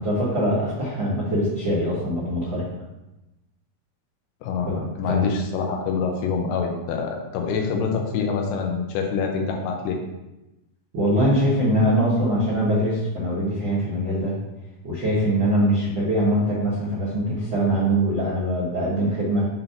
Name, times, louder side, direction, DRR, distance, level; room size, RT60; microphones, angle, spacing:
voice 1, 0.0-2.6 4.7-5.3 10.9-14.3 14.8-19.4, equal, 80° right, -8 dB, 1.0 m, -23 dB
voice 2, 4.4-4.7 5.0-10.0, left 5 dB, 90° left, 2 dB, 2.9 m, -25 dB
7.3 x 2.7 x 5.6 m, 0.99 s
omnidirectional pair, 4.6 m